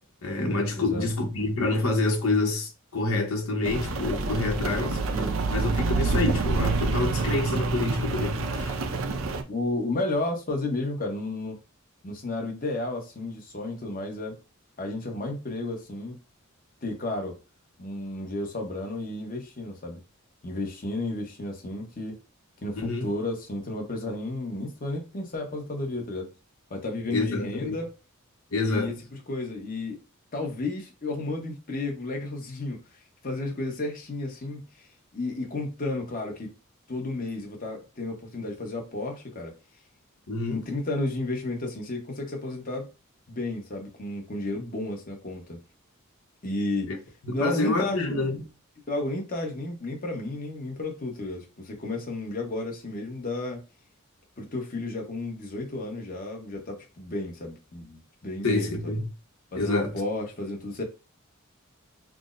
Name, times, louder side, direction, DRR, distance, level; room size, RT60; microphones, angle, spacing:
voice 1, 0.2-8.7 22.8-23.1 27.1-27.8 28.5-28.9 40.3-40.6 46.9-47.0 47.2-48.4 58.4-59.1 59.5-59.9, left 2 dB, 80° left, 0.9 m, -27 dB
Rain, 3.6-9.4, right 3 dB, 70° right, 0.5 m, -27 dB
voice 2, 5.1-5.4 9.5-11.6 12.0-14.3 14.8-16.1 16.8-17.4 17.8-20.0 20.4-22.2 22.6-26.3 26.7-27.9 28.6-28.9 29.3-30.0 30.3-32.8 33.2-34.6 35.1-36.5 36.9-39.5 40.5-42.9 43.3-45.6 46.4-46.9 47.3-48.2 48.9-53.6 54.4-59.0 59.5-60.8, left 2 dB, 40° left, 0.9 m, -32 dB
5.8 x 2.0 x 2.5 m
head